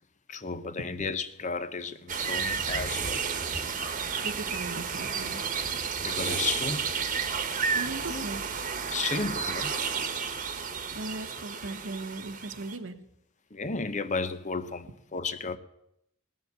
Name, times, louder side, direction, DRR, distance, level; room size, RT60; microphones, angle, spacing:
voice 1, 0.3-3.2 6.0-6.9 8.1-8.3 8.9-9.8 13.5-15.6, left 4 dB, 35° left, 0.8 m, -33 dB
sound 1, 2.1-12.8, right 6 dB, 40° right, 1.3 m, -32 dB
voice 2, 4.2-5.4 7.7-8.5 10.9-13.0, right 2 dB, 65° right, 1.1 m, -38 dB
18.5 x 7.3 x 8.2 m
head